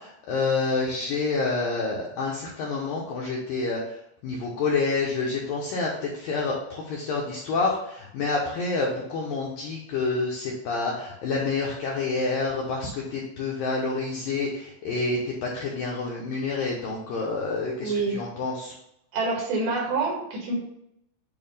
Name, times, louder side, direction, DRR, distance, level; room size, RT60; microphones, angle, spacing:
voice 1, 0.0-18.8, left 3 dB, 75° left, -2 dB, 2.0 m, -28 dB
voice 2, 17.8-18.2 19.1-20.6, right 3 dB, 70° right, -1 dB, 3.7 m, -26 dB
9.1 x 3.2 x 5.4 m, 0.77 s
omnidirectional pair, 5.3 m